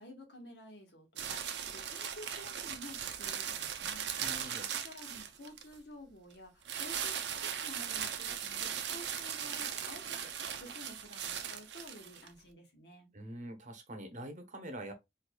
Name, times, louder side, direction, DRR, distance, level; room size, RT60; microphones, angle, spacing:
voice 1, 0.0-10.3 10.6-13.1, left 1 dB, 70° left, 1.4 m, -52 dB
sound 1, 1.2-5.7 6.6-12.3, right 8 dB, 70° right, 0.6 m, -38 dB
voice 2, 4.2-4.7 13.1-14.9, right 1 dB, 45° right, 0.9 m, -44 dB
4.5 x 2.6 x 2.3 m
head